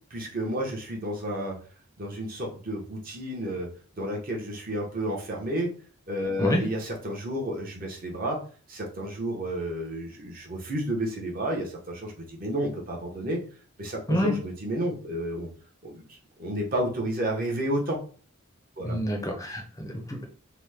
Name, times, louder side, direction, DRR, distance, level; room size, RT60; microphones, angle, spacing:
voice 1, 0.1-1.6 2.0-3.7 4.0-5.7 6.1-8.4 8.7-13.4 13.8-15.5 15.8-16.0 16.4-18.0 18.8-19.0, right 1 dB, 40° right, 0 dB, 0.8 m, -31 dB
voice 2, 18.8-20.2, equal, 15° left, 1 dB, 0.5 m, -27 dB
2.9 x 2.1 x 3.3 m, 0.41 s
head